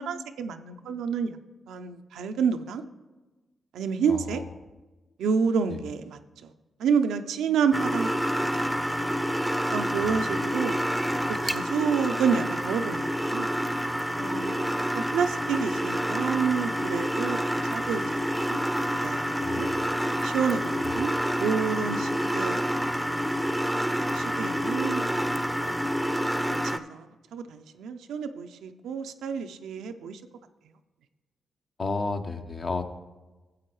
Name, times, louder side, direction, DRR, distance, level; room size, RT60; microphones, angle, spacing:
voice 1, 0.0-1.4 1.7-2.8 3.7-4.4 5.2-6.2 6.8-8.1 8.4-8.5 9.7-10.8 11.3-13.5 14.2-18.2 18.5-18.6 19.0-19.7 20.2-21.1 21.4-22.7 24.1-25.3 26.1-27.1 27.3-30.2, right 6 dB, 80° right, 8 dB, 0.5 m, -29 dB
voice 2, 4.1-4.5 5.7-5.8 10.0-10.8 19.4-19.9 20.8-21.0 31.8-32.8, left 3 dB, 50° left, 6 dB, 0.8 m, -34 dB
sound 1, 7.7-26.8, equal, ahead, 0.6 m, -28 dB
13.5 x 7.6 x 3.1 m, 1.2 s
supercardioid pair, 45°, 0 cm